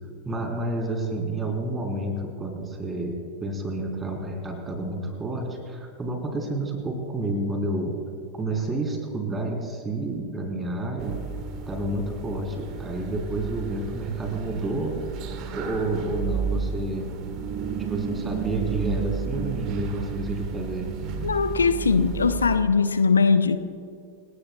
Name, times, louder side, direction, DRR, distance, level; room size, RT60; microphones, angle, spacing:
voice 1, 0.2-8.0 8.3-11.2 11.7-15.1 15.5-17.1 17.8-20.9, right 2 dB, 15° right, 1 dB, 4.0 m, -29 dB
sound 1, 11.0-22.6, right 5 dB, 40° right, 1.7 m, -32 dB
voice 2, 21.2-23.6, left 5 dB, 75° left, 11 dB, 0.7 m, -20 dB
29.0 x 18.5 x 2.4 m, 2.4 s
figure-of-eight pair, 90°, 0 cm